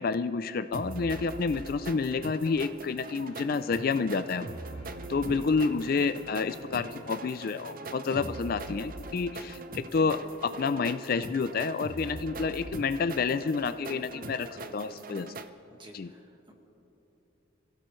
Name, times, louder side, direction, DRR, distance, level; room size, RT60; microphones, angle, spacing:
voice 1, 0.0-4.5 5.1-15.3 15.9-16.1, left 4 dB, 45° left, 12 dB, 0.4 m, -29 dB
sound 1, 0.7-15.5, right 2 dB, 45° right, 0.6 m, -41 dB
sound 2, 3.3-9.5, left 1 dB, 85° left, 2.0 m, -53 dB
voice 2, 5.2-5.6 8.0-8.3 15.7-16.5, right 1 dB, 25° right, 1 dB, 1.7 m, -49 dB
27.0 x 16.5 x 3.2 m, 3.0 s
head